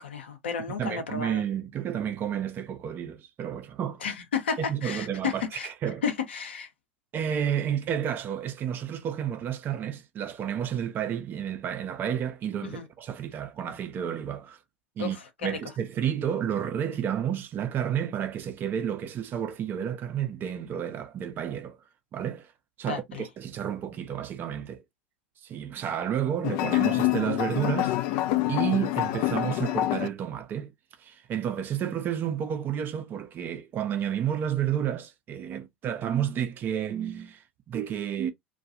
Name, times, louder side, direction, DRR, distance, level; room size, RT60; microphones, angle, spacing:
voice 1, 0.0-1.4 4.0-5.7 6.0-6.7 12.6-12.8 15.0-15.2 15.5-15.6 22.8-23.3, left 6 dB, 70° left, 0.8 m, -32 dB
voice 2, 0.8-4.0 4.6-6.0 7.1-14.6 15.0-15.2 15.4-21.8 22.1-22.5 22.8-24.8 25.4-30.7 31.0-38.3, right 9 dB, 35° right, 0.5 m, -31 dB
sound 1, 26.4-30.1, left 15 dB, 50° left, 0.3 m, -26 dB
2.3 x 2.2 x 2.7 m
figure-of-eight pair, 80°, 6 cm